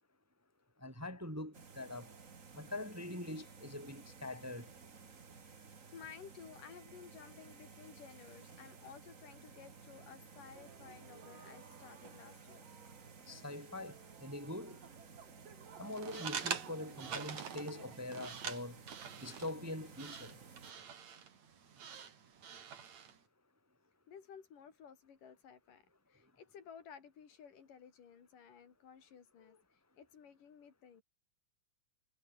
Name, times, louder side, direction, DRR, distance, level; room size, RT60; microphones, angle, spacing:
voice 1, 0.8-2.1 2.5-4.7 13.3-14.8 15.8-18.8 19.2-20.4, left 1 dB, 5° right, 2.1 m, -44 dB
sound 1, 1.5-20.7, right 5 dB, 30° right, 1.7 m, -56 dB
voice 2, 5.1-5.5 5.9-12.7 20.5-20.8 24.1-31.0, left 7 dB, 80° left, 4.7 m, -55 dB
sound 2, 10.5-18.0, right 7 dB, 85° right, 4.7 m, -57 dB
sound 3, 15.9-23.2, right 7 dB, 60° right, 3.8 m, -45 dB
omnidirectional pair, 3.7 m